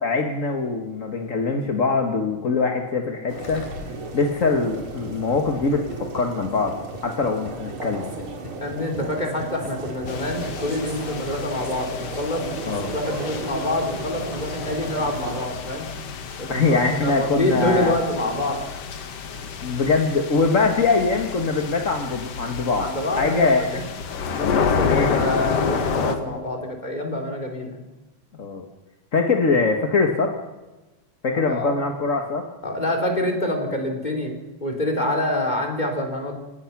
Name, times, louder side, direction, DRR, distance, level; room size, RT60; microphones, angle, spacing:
voice 1, 0.0-3.7 4.1-6.8 7.0-8.1 12.6-13.0 16.5-18.0 19.6-22.9 23.2-23.8 24.9-25.3 28.4-28.6 29.1-30.4 31.2-32.5, left 4 dB, 40° left, 3 dB, 1.2 m, -22 dB
sound 1, 3.3-15.5, right 3 dB, 45° right, 3.0 m, -35 dB
Gurgling, 3.4-10.9 11.2-11.3, left 3 dB, 75° left, 5.1 m, -40 dB
voice 2, 8.6-12.5 12.9-15.9 16.4-18.6 22.8-23.8 24.4-27.8 31.4-31.8 32.6-34.3 34.6-36.3, left 1 dB, 15° left, 2 dB, 3.9 m, -26 dB
sound 2, 10.1-26.2, left 6 dB, 55° left, 2.4 m, -29 dB
29.0 x 19.0 x 6.1 m, 1.1 s
omnidirectional pair, 3.6 m